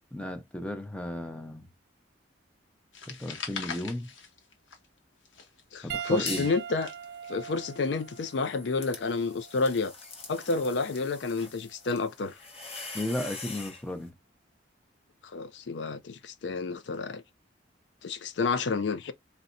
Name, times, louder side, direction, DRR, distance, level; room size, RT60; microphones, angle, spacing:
voice 1, 0.1-1.7 3.1-4.1 5.8-6.5 12.9-14.1, left 1 dB, 5° left, 0.6 m, -34 dB
sound 1, 2.9-5.0 5.3-7.5, left 6 dB, 80° left, 0.9 m, -41 dB
voice 2, 5.7-6.9 7.3-9.9 10.3-12.4 15.3-17.2 18.0-19.1, left 4 dB, 65° left, 0.4 m, -30 dB
Piano, 5.9-10.6 11.5-11.7 13.6-13.7, right 8 dB, 55° right, 0.3 m, -42 dB
sound 2, 6.1-6.6 7.0-13.8, left 3 dB, 30° left, 0.9 m, -43 dB
3.9 x 2.2 x 2.5 m
head